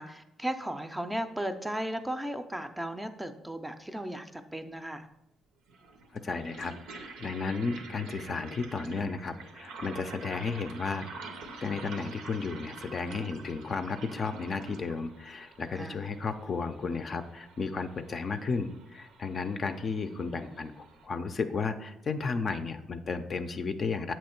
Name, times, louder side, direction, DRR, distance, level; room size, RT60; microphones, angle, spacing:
voice 1, 0.0-5.1 15.8-15.9, right 1 dB, 10° right, 8 dB, 0.4 m, -35 dB
sound 1, 4.7-4.8 5.7-21.1, right 3 dB, 90° right, 0.6 m, -47 dB
voice 2, 6.2-11.3 11.6-24.1, left 4 dB, 45° left, 8 dB, 0.4 m, -33 dB
7.8 x 3.0 x 4.3 m, 0.87 s
cardioid pair, 90°, 0 cm